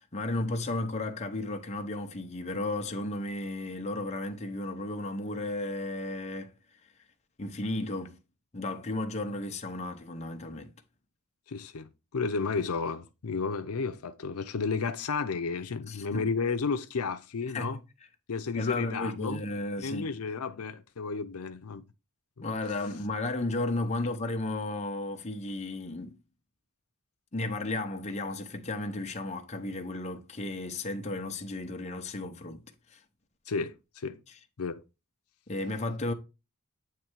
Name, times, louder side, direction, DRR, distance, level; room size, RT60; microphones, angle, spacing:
voice 1, 0.0-6.5 7.4-8.2 8.5-10.7 15.9-16.3 17.5-17.8 18.6-20.2 22.4-26.2 27.3-32.6 32.9-33.0 35.5-36.1, left 2 dB, 30° left, 0.8 m, -34 dB
voice 2, 11.5-17.8 18.3-19.4 19.8-21.8 33.5-34.2 34.6-34.8, left 4 dB, 85° left, 0.6 m, -32 dB
8.5 x 3.2 x 4.6 m
head